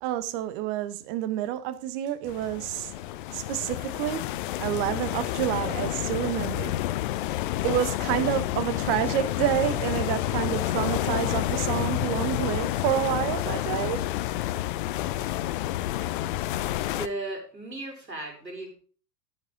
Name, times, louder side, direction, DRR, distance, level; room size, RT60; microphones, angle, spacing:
voice 1, 0.0-2.9 3.3-4.2 4.6-6.8 7.6-14.1, right 12 dB, 35° right, 1.2 m, -28 dB
sound 1, 2.3-17.1, left 14 dB, 30° left, 0.6 m, -29 dB
voice 2, 16.7-18.7, right 2 dB, 85° right, 4.7 m, -36 dB
16.0 x 7.6 x 3.8 m
figure-of-eight pair, 100°, 49 cm